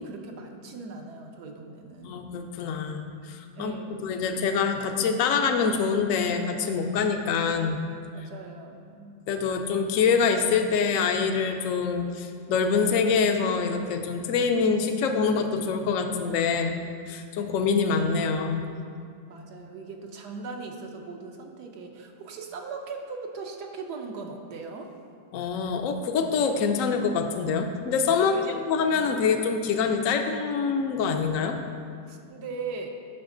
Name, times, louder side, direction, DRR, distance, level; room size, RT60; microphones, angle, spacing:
voice 1, 0.0-2.3 3.6-4.5 8.1-9.1 19.3-24.9 28.2-28.6 28.9-29.1 32.1-32.9, right 4 dB, 70° right, 2 dB, 1.4 m, -39 dB
voice 2, 2.0-7.8 9.3-16.8 17.1-18.6 25.3-28.4 28.7-31.6, left 5 dB, 60° left, 5 dB, 0.9 m, -25 dB
10.5 x 6.2 x 3.8 m, 2.3 s
omnidirectional pair, 1.9 m